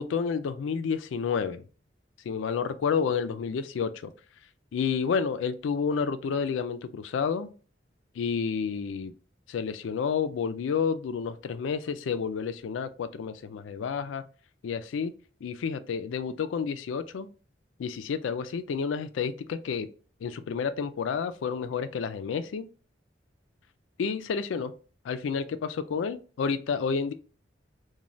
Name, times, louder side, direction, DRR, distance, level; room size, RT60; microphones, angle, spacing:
voice 1, 0.0-1.6 2.3-4.1 4.7-7.5 8.2-9.1 9.5-14.2 14.6-15.1 15.4-17.3 17.8-19.9 20.2-22.7 24.0-24.7 25.0-27.1, left 6 dB, 85° left, 0.3 m, -30 dB
3.1 x 2.2 x 2.5 m
head